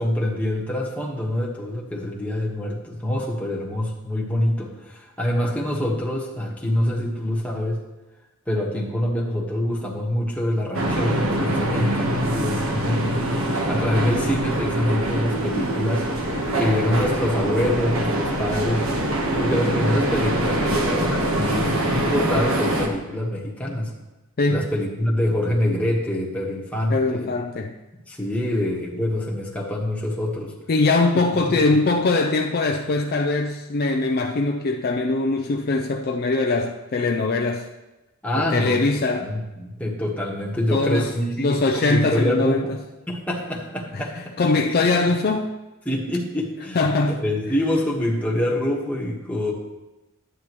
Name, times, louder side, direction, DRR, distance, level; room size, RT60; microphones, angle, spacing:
voice 1, 0.0-7.8 8.5-13.2 13.4-16.0 16.6-18.8 19.4-23.9 24.5-27.3 28.1-30.5 31.5-31.6 38.2-38.8 39.1-42.8 43.1-44.3 45.8-49.5, left 1 dB, 5° left, 1.3 m, -25 dB
sound 1, 10.7-22.9, right 1 dB, 65° right, 1.2 m, -24 dB
voice 2, 24.4-24.7 26.9-27.7 30.7-37.7 38.3-39.3 40.7-41.1 41.4-42.6 43.9-44.0 44.4-45.5 46.7-47.2, left 3 dB, 45° left, 0.4 m, -22 dB
11.0 x 8.9 x 3.0 m
head